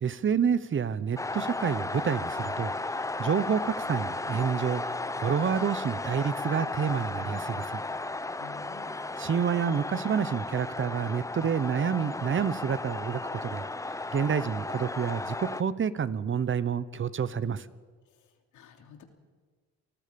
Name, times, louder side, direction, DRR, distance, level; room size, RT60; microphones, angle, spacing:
voice 1, 0.0-2.7 3.2-7.8 9.2-13.6 14.1-17.7, right 7 dB, 40° right, 1.0 m, -28 dB
sound 1, 1.2-15.6, left 2 dB, 10° left, 0.7 m, -34 dB
voice 2, 8.4-9.0 18.5-19.0, left 7 dB, 80° left, 3.2 m, -49 dB
29.5 x 19.5 x 5.3 m
cardioid pair, 90°, 30 cm